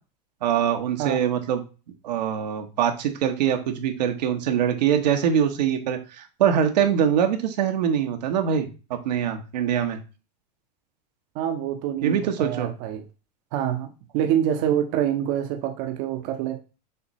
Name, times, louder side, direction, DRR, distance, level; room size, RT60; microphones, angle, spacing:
voice 1, 0.4-1.6 2.0-10.0 12.0-12.7, right 8 dB, 85° right, 5 dB, 0.9 m, -23 dB
voice 2, 11.3-13.0 13.5-16.6, right 10 dB, 55° right, 5 dB, 0.7 m, -26 dB
6.7 x 2.6 x 3.0 m, 0.32 s
hypercardioid pair, 110°, 21 cm